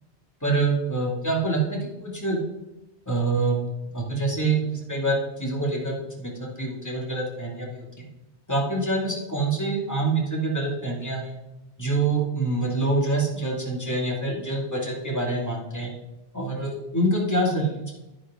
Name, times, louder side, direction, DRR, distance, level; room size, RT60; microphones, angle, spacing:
voice 1, 0.4-2.4 3.1-3.6 3.9-8.1 8.5-11.4 11.8-15.9 16.3-18.0, right 2 dB, 15° left, -2 dB, 2.5 m, -26 dB
10.5 x 10.5 x 3.8 m, 0.95 s
omnidirectional pair, 1.2 m